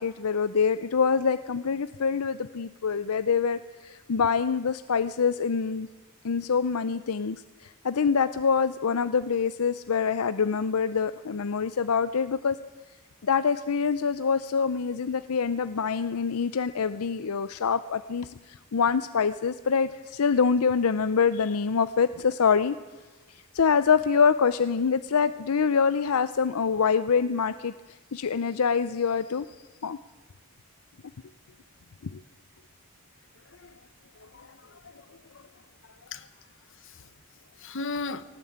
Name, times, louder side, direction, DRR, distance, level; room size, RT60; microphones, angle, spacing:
voice 1, 0.0-5.9 6.2-12.6 13.2-22.8 23.3-29.5 29.8-30.0 32.0-32.2, left 6 dB, 80° left, 0.6 m, -25 dB
voice 2, 34.2-35.4 36.1-36.3 37.6-38.2, left 3 dB, 60° left, 1.2 m, -37 dB
20.0 x 18.0 x 8.7 m
head